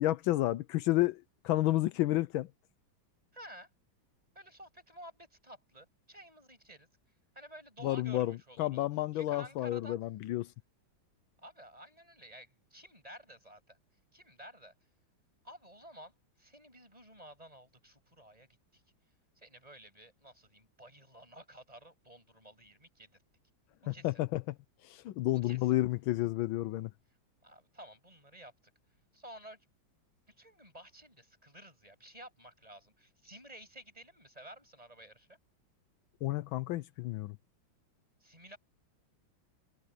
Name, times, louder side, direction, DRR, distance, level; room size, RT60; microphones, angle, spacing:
voice 1, 0.0-2.5 7.8-10.5 23.9-24.4 24.8-26.9 36.2-37.4, left 16 dB, 80° left, 1.4 m, -31 dB
voice 2, 3.3-3.7 4.3-6.9 7.3-8.8 9.1-10.0 11.4-13.8 14.1-14.7 15.4-16.1 16.4-18.5 18.7-18.8 19.4-23.1 23.9-24.2 25.3-25.8 27.4-28.5 29.1-29.6 30.4-35.4 38.2-38.6, right 1 dB, 15° right, 8.2 m, -52 dB
omnidirectional pair, 2.2 m